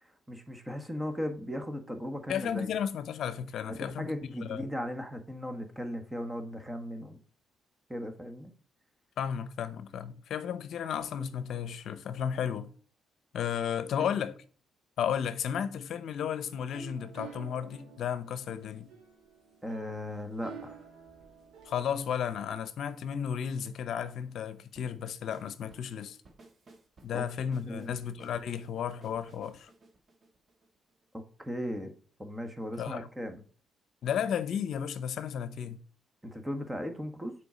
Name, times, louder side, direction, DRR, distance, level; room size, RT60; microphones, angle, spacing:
voice 1, 0.0-2.7 3.7-7.2 7.9-8.5 19.6-20.8 27.1-27.2 27.7-27.9 31.4-31.9 32.2-33.4 36.2-37.3, equal, 10° right, 1.4 m, -37 dB
voice 2, 2.3-4.1 4.4-4.7 9.2-12.7 13.3-14.4 15.0-18.9 21.7-26.2 27.0-29.7 32.8-33.1 34.0-35.8, left 8 dB, 70° left, 0.7 m, -33 dB
sound 1, 16.4-21.9, right 5 dB, 85° right, 2.6 m, -50 dB
sound 2, 24.8-31.1, right 2 dB, 40° right, 1.4 m, -58 dB
6.9 x 4.7 x 5.0 m
cardioid pair, 90°, 0 cm